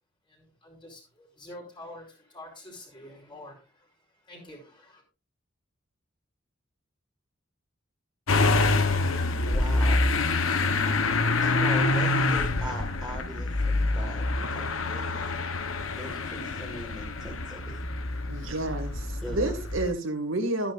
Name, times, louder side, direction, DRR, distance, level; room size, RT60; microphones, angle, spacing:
voice 1, 0.3-5.0, left 1 dB, 25° left, -1 dB, 4.6 m, -47 dB
Motor vehicle (road) / Engine starting, 8.3-19.9, left 3 dB, 90° left, 1.2 m, -26 dB
voice 2, 9.3-10.1 11.4-15.2 16.0-17.8 19.2-19.5, right 1 dB, ahead, -4 dB, 2.0 m, -40 dB
voice 3, 18.3-20.7, right 2 dB, 75° right, 3 dB, 2.3 m, -30 dB
13.0 x 10.5 x 2.6 m, 0.30 s
head